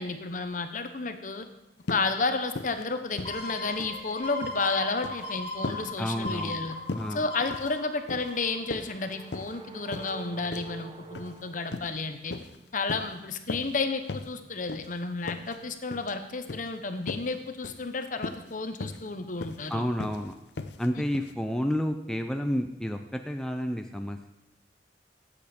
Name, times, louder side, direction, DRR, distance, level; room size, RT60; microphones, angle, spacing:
voice 1, 0.0-1.5 1.9-6.8 7.1-12.3 12.7-19.8, left 3 dB, 50° left, 8 dB, 0.9 m, -32 dB
sound 1, 1.8-2.1 2.5-2.8 3.1-4.0 4.3-4.6 5.0-5.2 5.6-5.9 6.2-6.6 6.9-7.1 7.5-7.8 8.1-8.3 8.7-9.5 9.9-10.1 10.5-10.7 11.1-11.3 11.7-11.9 12.3-12.6 12.9-13.1 13.5-13.8 14.1-14.3 14.7-14.9 15.2-15.6 15.9-16.1 16.5-16.7 17.1-17.3 17.6-17.8 18.2-18.5 18.8-19.1 19.4-19.7 20.0-20.2 20.6-20.9 21.1-21.3, left 3 dB, 75° left, 0.7 m, -37 dB
sound 2, 3.2-8.7 9.2-9.3, left 1 dB, 30° left, 2.3 m, -38 dB
voice 2, 6.0-6.6 6.9-7.2 19.7-20.3 20.8-24.3, equal, 5° left, 5 dB, 0.5 m, -30 dB
sound 3, 8.0-12.4, right 4 dB, 30° right, 0.8 m, -48 dB
13.5 x 8.5 x 4.4 m, 0.88 s
head